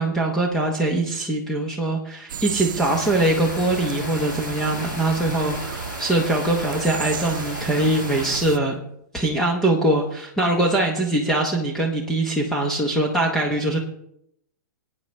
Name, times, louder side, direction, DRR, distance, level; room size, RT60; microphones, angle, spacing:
voice 1, 0.0-8.8 9.1-13.8, right 2 dB, 5° left, 0 dB, 0.8 m, -22 dB
sound 1, 2.3-8.6, right 8 dB, 75° right, 0.6 m, -33 dB
Stream, 2.8-8.4, left 3 dB, 55° left, 5.2 m, -35 dB
18.0 x 9.3 x 3.2 m, 0.75 s
hypercardioid pair, 170°, 11 cm